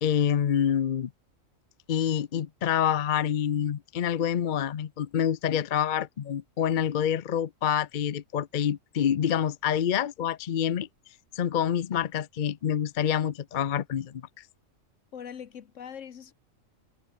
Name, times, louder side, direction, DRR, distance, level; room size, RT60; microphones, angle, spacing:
voice 1, 0.0-1.1 1.9-10.9 11.3-14.2, left 9 dB, 50° left, 0.6 m, -27 dB
voice 2, 15.1-16.3, left 8 dB, 65° left, 1.4 m, -42 dB
omnidirectional pair, 1.4 m